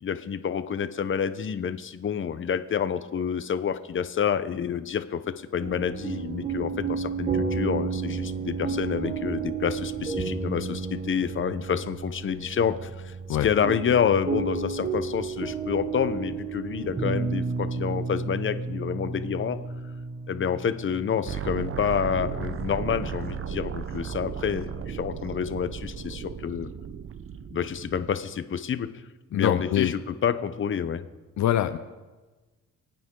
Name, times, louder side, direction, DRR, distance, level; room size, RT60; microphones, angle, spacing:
voice 1, 0.0-13.2 13.4-19.6 20.3-26.7 27.5-29.0 29.3-31.0, left 7 dB, 40° left, 11 dB, 0.9 m, -28 dB
sound 1, 5.6-23.4, right 4 dB, 25° right, 1.4 m, -32 dB
sound 2, 21.3-28.1, right 8 dB, 45° right, 0.9 m, -35 dB
voice 2, 29.3-29.9 31.4-31.8, left 11 dB, 70° left, 10 dB, 0.7 m, -24 dB
25.5 x 9.2 x 3.9 m, 1.2 s
cardioid pair, 90°, 30 cm